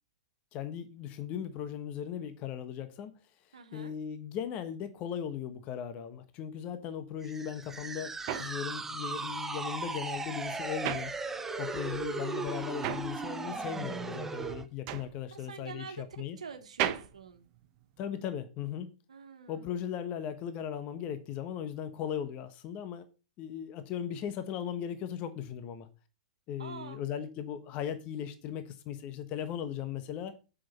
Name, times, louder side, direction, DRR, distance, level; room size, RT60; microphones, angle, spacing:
voice 1, 0.5-3.1 3.5-11.1 11.6-16.4 18.0-18.9 19.5-23.0 23.4-25.9 26.5-30.3, left 9 dB, 35° left, 1.1 m, -38 dB
voice 2, 3.5-3.9 15.3-16.0 16.4-17.4 19.1-19.8 26.6-27.0, right 6 dB, 75° right, 1.4 m, -46 dB
sound 1, 7.2-14.7, right 4 dB, 10° right, 0.8 m, -37 dB
sound 2, 7.5-11.8 12.1-18.3, right 11 dB, 40° right, 1.1 m, -38 dB
7.7 x 6.4 x 5.3 m
hypercardioid pair, 110°, 4 cm